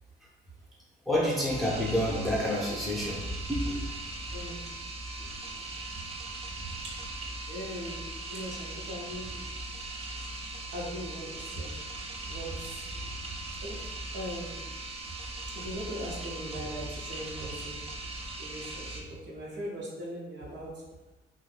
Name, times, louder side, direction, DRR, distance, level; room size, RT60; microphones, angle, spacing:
voice 1, 1.0-3.9, equal, ahead, -5 dB, 0.8 m, -29 dB
sound 1, 1.5-19.0, right 2 dB, 30° right, 0.5 m, -39 dB
voice 2, 4.3-4.6 5.2-5.6 6.8-6.9 7.5-8.0 8.3-9.5 10.1-10.2 10.7-11.7 12.2-13.2 13.6-13.8 14.1-14.6 15.5-17.8 18.4-20.7, equal, 65° right, -4 dB, 0.9 m, -39 dB
2.5 x 2.3 x 3.3 m, 1.1 s
cardioid pair, 90°, 20 cm